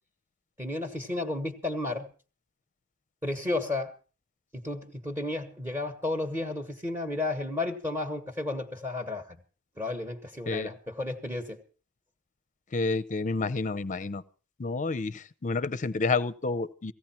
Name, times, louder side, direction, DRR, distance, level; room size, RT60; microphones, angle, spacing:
voice 1, 0.6-2.1 3.2-3.9 4.5-9.4 9.8-11.6, left 2 dB, 10° right, 4 dB, 1.3 m, -32 dB
voice 2, 12.7-14.2 14.6-16.9, left 3 dB, 35° left, 15 dB, 0.7 m, -29 dB
17.5 x 15.5 x 4.4 m, 0.37 s
head